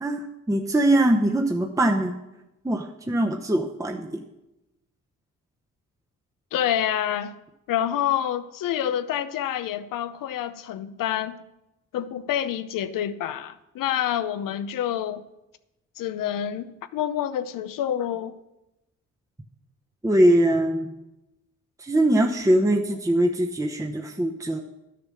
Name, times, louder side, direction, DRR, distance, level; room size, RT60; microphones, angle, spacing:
voice 1, 0.0-2.2 2.6-4.2 20.0-20.9 21.8-24.6, right 1 dB, 10° right, 0.9 m, -22 dB
voice 2, 6.5-7.3 7.7-11.4 11.9-15.2 16.0-18.4, left 10 dB, 90° left, 0.7 m, -27 dB
11.5 x 6.8 x 6.3 m
cardioid pair, 85°, 32 cm